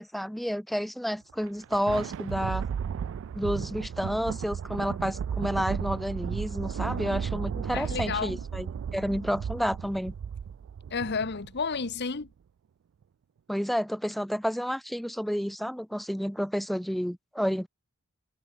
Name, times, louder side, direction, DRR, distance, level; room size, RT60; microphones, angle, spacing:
voice 1, 0.0-2.7 3.3-10.1 13.5-17.7, equal, ahead, 0.7 m, -30 dB
Thunder, 1.3-12.0, right 7 dB, 60° right, 0.3 m, -34 dB
voice 2, 7.7-8.4 10.9-12.3, left 5 dB, 50° left, 1.0 m, -31 dB
head